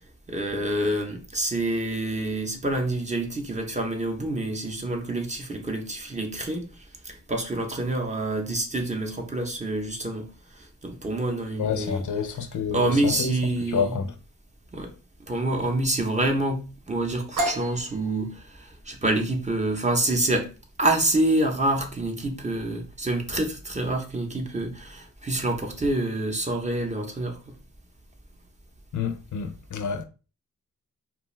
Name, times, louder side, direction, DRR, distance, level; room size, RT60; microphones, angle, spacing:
voice 1, 0.3-6.6 7.0-10.3 10.5-12.0 12.7-14.0 14.7-14.9 15.2-20.5 20.8-27.5, right 1 dB, 20° right, 0.6 m, -27 dB
voice 2, 11.6-13.3 13.7-14.1 28.9-30.0, left 6 dB, 70° left, 0.4 m, -28 dB
sound 1, 17.4-25.0, right 1 dB, 75° right, 0.6 m, -37 dB
2.4 x 2.2 x 3.0 m
wide cardioid pair, 90°, 32 cm